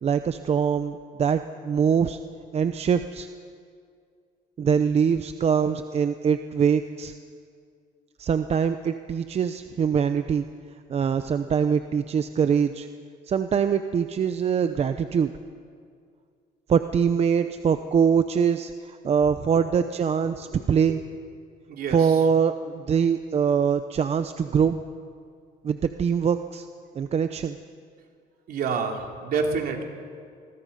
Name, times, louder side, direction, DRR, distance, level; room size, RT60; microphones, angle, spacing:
voice 1, 0.0-2.2 2.5-3.3 4.6-7.1 8.2-10.4 10.9-12.9 13.3-15.3 16.7-21.0 21.9-24.8 25.6-26.6 26.9-27.6, right 7 dB, 40° right, 10 dB, 0.7 m, -23 dB
voice 2, 21.7-22.2 28.5-29.8, right 5 dB, 60° right, 2 dB, 3.0 m, -29 dB
26.5 x 21.5 x 5.4 m, 2.2 s
cardioid pair, 110°, 17 cm